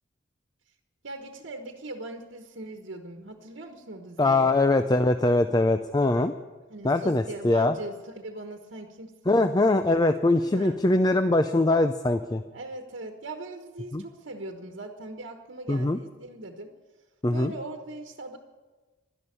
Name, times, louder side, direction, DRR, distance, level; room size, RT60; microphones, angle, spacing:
voice 1, 1.0-4.5 6.7-9.4 10.1-10.8 12.5-16.7 17.3-18.4, right 2 dB, 70° right, 4 dB, 1.3 m, -40 dB
voice 2, 4.2-6.3 6.8-7.7 9.3-12.4 13.9-14.0 15.7-16.0 17.2-17.5, left 2 dB, 20° left, 9 dB, 0.4 m, -22 dB
12.0 x 11.0 x 10.0 m, 1.3 s
head